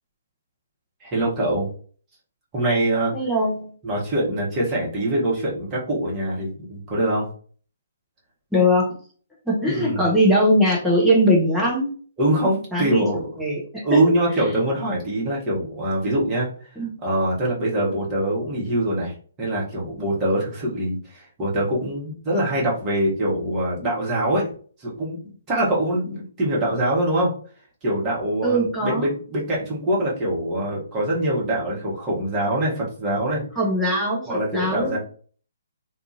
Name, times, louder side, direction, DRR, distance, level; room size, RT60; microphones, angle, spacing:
voice 1, 1.0-1.7 2.5-3.1 3.8-7.3 9.7-10.1 12.2-13.2 13.8-16.7 17.0-24.5 24.8-27.3 27.8-33.4 34.3-35.0, right 1 dB, 20° right, -5 dB, 1.2 m, -24 dB
voice 2, 3.1-3.7 8.5-8.9 9.5-11.9 12.7-14.0 16.8-16.9 28.4-29.1 33.6-35.0, equal, ahead, -5 dB, 0.8 m, -21 dB
2.6 x 2.4 x 2.8 m, 0.44 s
figure-of-eight pair, 130°, 0 cm